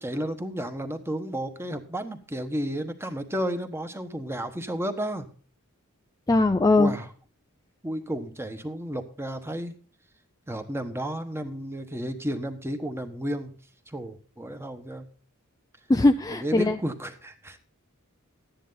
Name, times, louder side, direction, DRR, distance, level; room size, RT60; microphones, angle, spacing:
voice 1, 0.0-5.3 6.8-7.1 7.8-9.7 10.5-13.5 13.9-15.1 16.3-17.6, right 1 dB, 10° right, 7 dB, 1.2 m, -32 dB
voice 2, 6.3-6.9 15.9-16.8, left 2 dB, 15° left, 7 dB, 0.4 m, -20 dB
13.0 x 10.0 x 4.0 m, 0.39 s
head